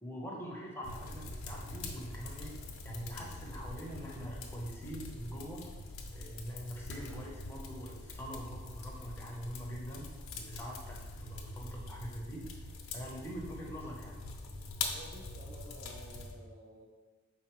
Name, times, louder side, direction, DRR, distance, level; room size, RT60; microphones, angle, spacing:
voice 1, 0.0-2.5 2.8-5.6 6.1-10.1 10.4-12.5 12.9-14.2, equal, 10° left, -3 dB, 0.7 m, -44 dB
sound 1, 0.8-16.3, left 3 dB, 85° left, 0.6 m, -44 dB
voice 2, 14.9-16.9, equal, 40° right, 0 dB, 0.5 m, -52 dB
4.7 x 3.6 x 3.0 m, 1.3 s
head